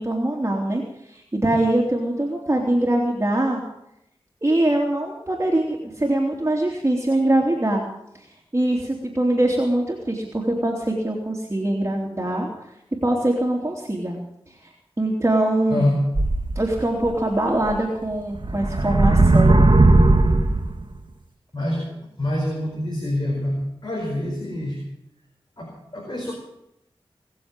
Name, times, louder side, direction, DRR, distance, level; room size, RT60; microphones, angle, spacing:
voice 1, 0.0-3.6 4.4-7.8 8.2-8.3 8.5-12.5 13.0-14.7 15.0-15.9 16.5-19.6, right 1 dB, 25° right, -2 dB, 3.1 m, -23 dB
voice 2, 15.7-16.1 21.5-24.9 25.6-26.3, left 1 dB, 45° left, -1 dB, 4.8 m, -26 dB
sound 1, 16.1-17.1 17.7-17.8 18.3-20.8, right 2 dB, 55° right, 2.2 m, -17 dB
20.5 x 7.4 x 8.9 m, 0.80 s
cardioid pair, 45°, 10 cm